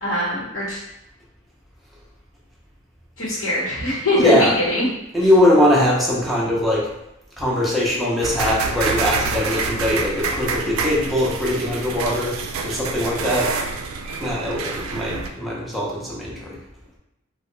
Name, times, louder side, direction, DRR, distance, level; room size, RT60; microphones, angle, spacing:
voice 1, 0.0-0.8 3.2-4.8, left 1 dB, 70° left, -8 dB, 1.0 m, -22 dB
voice 2, 4.1-4.7 5.1-6.9 7.4-13.5 14.2-16.6, left 1 dB, ahead, -5 dB, 0.6 m, -21 dB
sound 1, 8.2-15.3, right 4 dB, 85° right, 0.4 m, -27 dB
3.4 x 2.2 x 3.0 m, 0.87 s
head